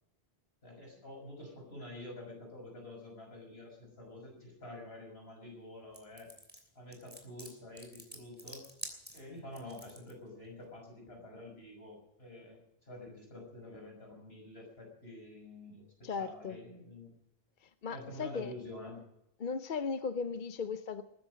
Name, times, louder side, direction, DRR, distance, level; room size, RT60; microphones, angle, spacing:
voice 1, 0.6-6.3 6.7-8.7 9.1-17.1 17.9-19.0, left 1 dB, 75° left, 1 dB, 6.2 m, -48 dB
sound 1, 5.9-10.1, equal, 10° right, 3.0 m, -48 dB
voice 2, 16.0-16.6 17.8-18.5 19.4-21.0, left 5 dB, 55° left, 11 dB, 0.8 m, -36 dB
20.5 x 10.5 x 6.3 m, 0.84 s
omnidirectional pair, 1.1 m